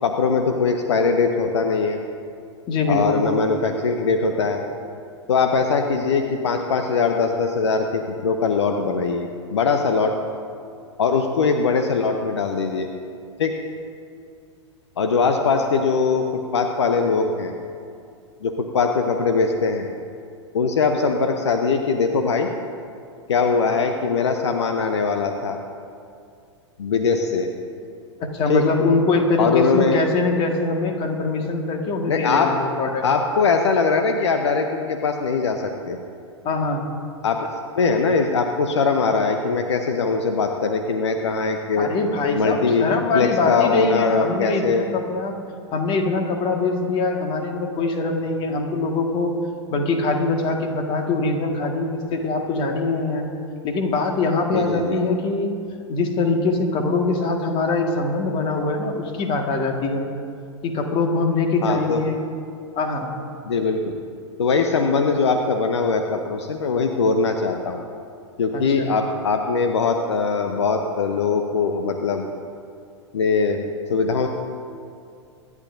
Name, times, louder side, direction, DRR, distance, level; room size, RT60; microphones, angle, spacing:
voice 1, 0.0-2.0 2.9-4.6 5.3-10.1 11.0-12.9 13.4-13.5 15.0-16.3 16.5-17.5 18.4-19.9 20.5-22.5 23.3-25.6 26.8-27.5 28.5-28.6 29.4-30.0 32.1-32.5 33.0-36.0 37.2-37.5 37.8-41.9 42.3-44.9 54.5-55.0 61.6-62.0 63.5-63.9 64.4-67.8 68.4-72.2 73.1-73.6 73.9-74.3, left 4 dB, 65° left, 5 dB, 0.9 m, -21 dB
voice 2, 2.7-3.3 28.2-33.0 36.4-36.8 41.8-45.3 45.7-49.3 49.7-53.3 53.6-55.5 55.9-60.1 60.6-62.2 62.8-63.1 68.5-68.9, left 3 dB, 35° left, 3 dB, 1.9 m, -23 dB
25.0 x 11.0 x 2.7 m, 2.4 s
figure-of-eight pair, 95°, 16 cm